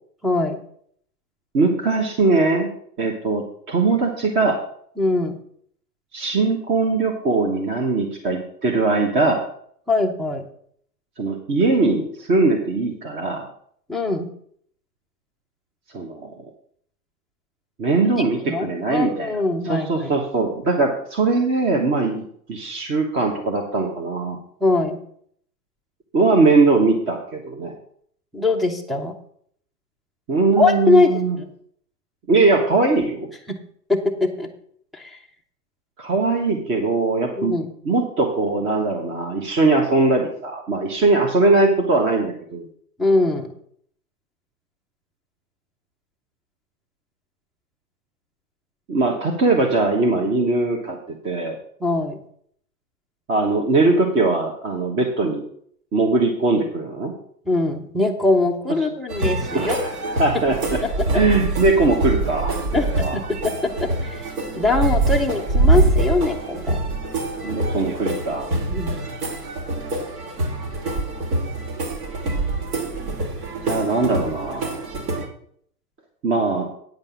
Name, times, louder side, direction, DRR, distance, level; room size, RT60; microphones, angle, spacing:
voice 1, 0.2-0.6 5.0-5.4 9.9-10.4 13.9-14.3 18.2-20.1 24.6-25.0 28.3-29.1 30.6-31.5 33.5-33.6 33.9-34.5 34.9-35.2 37.4-37.7 43.0-43.5 51.8-52.2 57.5-59.8 62.7-63.5 64.0-66.8 68.7-69.0, left 3 dB, ahead, 5 dB, 0.5 m, -22 dB
voice 2, 1.5-2.7 3.0-4.6 6.1-9.4 11.2-13.5 15.9-16.3 17.8-19.4 19.6-24.4 26.1-27.7 30.3-31.4 32.3-33.3 36.0-37.6 37.8-42.7 48.9-51.6 53.3-55.4 55.9-57.1 59.5-59.9 60.2-60.8 61.1-63.2 67.4-68.5 73.6-74.8 76.2-76.7, right 3 dB, 25° right, 1 dB, 1.2 m, -20 dB
sound 1, 59.1-75.3, right 2 dB, 65° right, 2.8 m, -24 dB
9.3 x 5.3 x 7.4 m, 0.64 s
hypercardioid pair, 120°, 49 cm